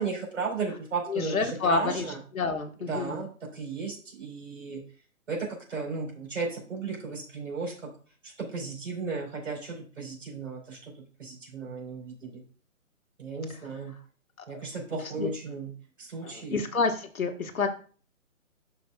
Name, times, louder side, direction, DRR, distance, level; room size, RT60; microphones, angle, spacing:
voice 1, 0.0-2.2 2.9-4.8 5.3-7.7 8.2-10.9 11.2-12.4 13.2-13.9 14.5-15.7 16.0-16.6, right 4 dB, 60° right, 0 dB, 3.8 m, -35 dB
voice 2, 1.1-3.2 13.5-13.6 14.5-14.6 15.0-15.3 16.2-17.7, left 4 dB, 75° left, 5 dB, 1.3 m, -29 dB
11.5 x 5.2 x 2.2 m, 0.40 s
figure-of-eight pair, 150°, 42 cm